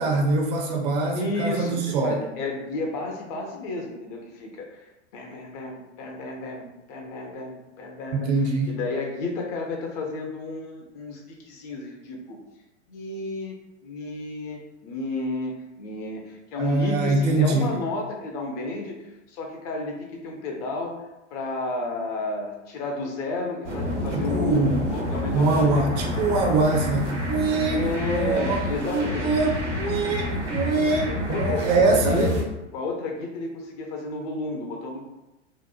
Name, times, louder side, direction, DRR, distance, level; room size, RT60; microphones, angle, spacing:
voice 1, 0.0-2.2 8.1-8.7 16.6-17.7 24.1-24.9 25.3-32.3, right 3 dB, 35° right, 1 dB, 0.4 m, -24 dB
voice 2, 1.1-8.3 8.7-12.4 12.9-13.5 13.8-19.0 19.3-21.0 21.3-25.9 27.7-29.3 31.3-32.5 32.7-35.0, left 3 dB, 35° left, 1 dB, 0.4 m, -32 dB
sound 1, 23.6-32.4, left 1 dB, 80° right, 0.9 m, -29 dB
2.8 x 2.0 x 2.3 m, 0.96 s
figure-of-eight pair, 90°, 35 cm